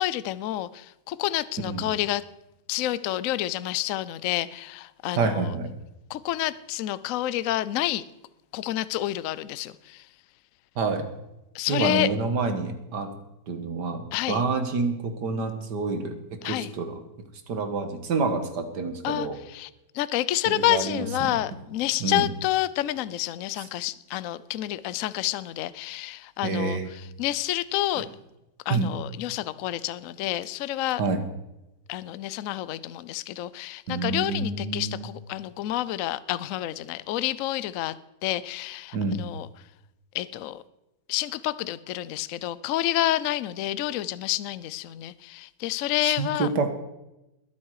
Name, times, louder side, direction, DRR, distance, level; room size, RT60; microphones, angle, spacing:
voice 1, 0.0-2.2 2.7-5.5 6.1-8.0 8.5-10.0 11.5-12.1 14.1-14.4 16.4-16.7 19.0-19.7 19.9-26.8 27.2-28.1 28.7-31.0 31.9-37.9 38.2-39.5 40.1-40.6 41.1-46.5, left 14 dB, 75° left, 17 dB, 0.7 m, -29 dB
voice 2, 5.2-5.7 10.8-11.1 11.7-13.1 13.5-17.0 17.5-19.4 20.5-21.4 22.0-22.3 23.6-23.7 26.4-26.9 28.0-28.1 28.7-28.9 31.0-31.2 33.9-35.1 38.9-39.2 46.0-46.7, right 4 dB, 65° right, 8 dB, 2.0 m, -28 dB
21.0 x 8.5 x 4.8 m, 0.93 s
omnidirectional pair, 2.0 m